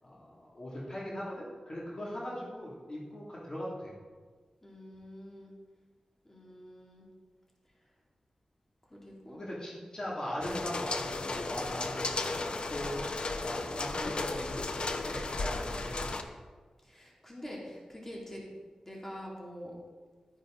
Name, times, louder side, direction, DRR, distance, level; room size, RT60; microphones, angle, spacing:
voice 1, 0.0-3.9 9.3-13.0 13.4-16.3, equal, 35° left, -5 dB, 2.6 m, -40 dB
voice 2, 2.0-2.3 4.6-5.5 6.2-7.1 8.9-9.4 15.6-15.9 16.8-18.4 18.9-19.7, equal, 15° left, -4 dB, 2.7 m, -46 dB
sound 1, 10.4-16.2, left 3 dB, 55° left, 0.8 m, -35 dB
12.5 x 9.9 x 3.9 m, 1.4 s
wide cardioid pair, 100°, 2 cm